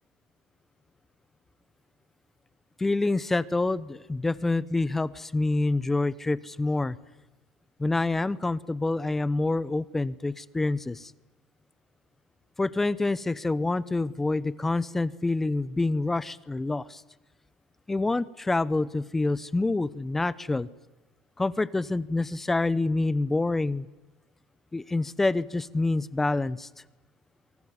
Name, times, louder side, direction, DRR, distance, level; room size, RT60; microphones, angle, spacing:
voice 1, 2.8-7.0 7.8-11.1 12.6-17.0 17.9-20.7 21.4-23.9 24.7-26.7, left 2 dB, 10° left, 17 dB, 0.9 m, -27 dB
24.5 x 24.0 x 9.9 m, 1.1 s
supercardioid pair, 105°, 2 cm